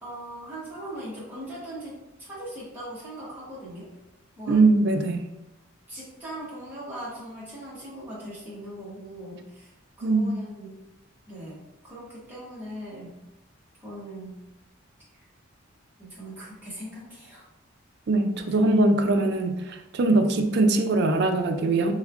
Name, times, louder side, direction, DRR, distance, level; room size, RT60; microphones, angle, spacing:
voice 1, 0.0-3.9 4.4-4.6 5.9-9.7 10.0-10.8 11.3-13.2 13.8-14.4 16.0-17.5, right 1 dB, 10° right, -8 dB, 1.0 m, -40 dB
voice 2, 4.5-5.3 10.0-10.4 18.1-21.9, right 2 dB, 50° right, 6 dB, 0.3 m, -22 dB
3.4 x 3.1 x 2.4 m, 0.96 s
head